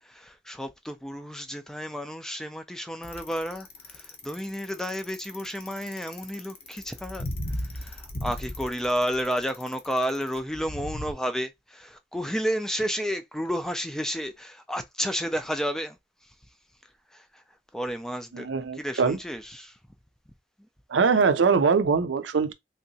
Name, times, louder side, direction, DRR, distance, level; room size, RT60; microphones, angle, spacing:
voice 1, 0.0-16.3 16.8-17.4 17.7-19.8 20.6-20.7, equal, 5° left, 0.3 m, -32 dB
Bicycle, 3.0-11.1, left 1 dB, 35° left, 0.7 m, -36 dB
voice 2, 18.3-19.2 20.9-22.5, right 5 dB, 90° right, 0.5 m, -22 dB
3.4 x 2.8 x 2.7 m
head